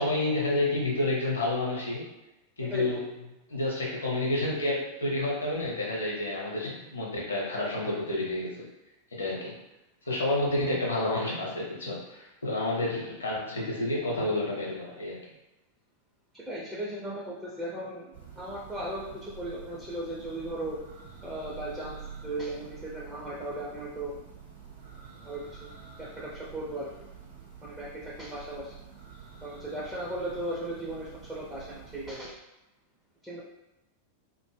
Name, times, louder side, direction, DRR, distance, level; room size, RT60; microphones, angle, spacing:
voice 1, 0.0-2.0 2.6-3.1 3.5-8.7 9.1-9.6 10.0-15.2, left 2 dB, 75° left, -3 dB, 0.7 m, -29 dB
voice 2, 2.6-3.0 16.3-18.1 18.4-20.8 21.2-24.1 25.2-25.7 26.0-26.9 27.6-28.7 29.4-32.3 33.2-33.4, right 1 dB, 10° right, -7 dB, 0.5 m, -37 dB
Church bell, 18.1-32.4, right 6 dB, 65° right, 0.6 m, -48 dB
2.1 x 2.0 x 3.2 m, 0.99 s
figure-of-eight pair, 90°, 0 cm